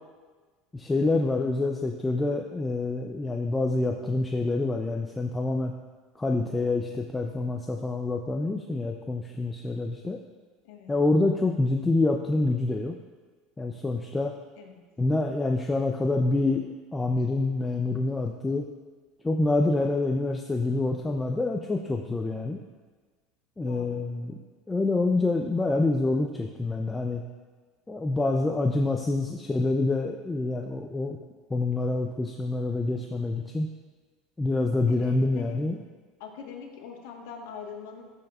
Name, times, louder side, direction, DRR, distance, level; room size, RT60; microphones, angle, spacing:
voice 1, 0.7-5.7 6.2-10.2 10.9-13.0 13.6-14.3 15.0-18.7 19.2-22.6 23.6-24.3 24.7-27.2 27.9-31.2 31.5-33.7 34.4-35.8, left 2 dB, 10° left, 3 dB, 0.4 m, -26 dB
voice 2, 1.4-1.7 10.6-10.9 14.6-14.8 23.6-24.1 34.9-35.6 36.2-38.0, left 6 dB, 80° left, 2 dB, 1.2 m, -43 dB
13.5 x 5.4 x 2.3 m, 1.4 s
supercardioid pair, 130°, 0 cm